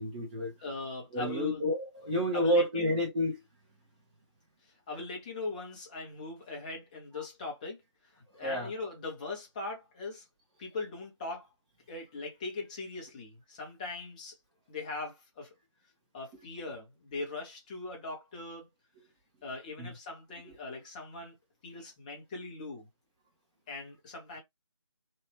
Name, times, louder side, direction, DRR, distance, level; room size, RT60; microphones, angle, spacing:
voice 1, 0.0-0.5 1.1-3.4 8.4-8.7 19.8-19.9 20.5-20.6, equal, 15° right, 1.2 m, -29 dB
voice 2, 0.6-1.6 2.3-2.9 4.9-7.8 8.1-10.2 10.6-11.5 11.9-14.4 14.7-15.5 16.1-18.7 19.4-21.3 21.6-22.9 23.7-24.4, left 3 dB, 15° left, 0.9 m, -40 dB
3.1 x 2.6 x 3.1 m
figure-of-eight pair, 160°, 16 cm